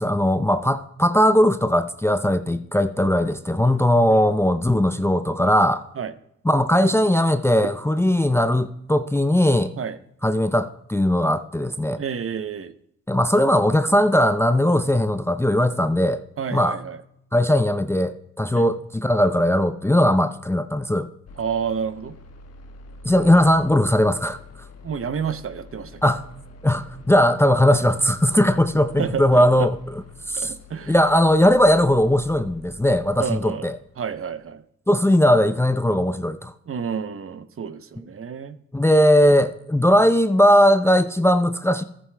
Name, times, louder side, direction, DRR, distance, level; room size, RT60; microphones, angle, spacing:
voice 1, 0.0-5.8 6.4-9.7 10.2-12.0 13.1-16.2 16.5-16.8 17.3-21.1 23.0-24.7 26.0-26.2 26.6-30.0 30.3-30.5 30.9-33.8 34.9-36.5 38.7-41.8, left 1 dB, 10° left, 10 dB, 0.6 m, -19 dB
voice 2, 11.9-12.7 16.4-17.0 18.5-18.7 21.4-22.1 24.8-26.0 29.0-29.7 30.4-30.9 33.2-33.7 34.0-34.6 36.7-38.6, right 7 dB, 40° right, 12 dB, 0.8 m, -29 dB
sound 1, 21.3-34.3, left 3 dB, 45° left, 1.2 m, -46 dB
14.0 x 9.6 x 2.2 m, 0.75 s
hypercardioid pair, 45°, 33 cm